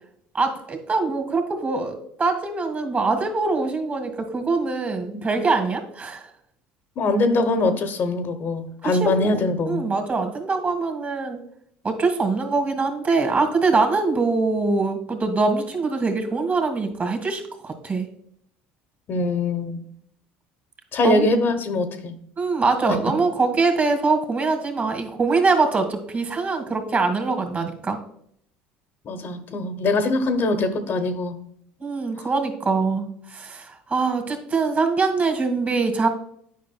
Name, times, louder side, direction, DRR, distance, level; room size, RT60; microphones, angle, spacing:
voice 1, 0.3-6.3 8.8-11.4 11.8-18.1 21.0-21.3 22.4-28.0 31.8-36.1, right 4 dB, 35° right, 5 dB, 1.8 m, -23 dB
voice 2, 7.0-9.9 19.1-19.8 20.9-22.2 22.9-23.0 29.0-31.4 32.2-32.3, left 2 dB, 50° left, 8 dB, 0.8 m, -23 dB
9.4 x 5.1 x 2.3 m, 0.68 s
hypercardioid pair, 75°, 5 cm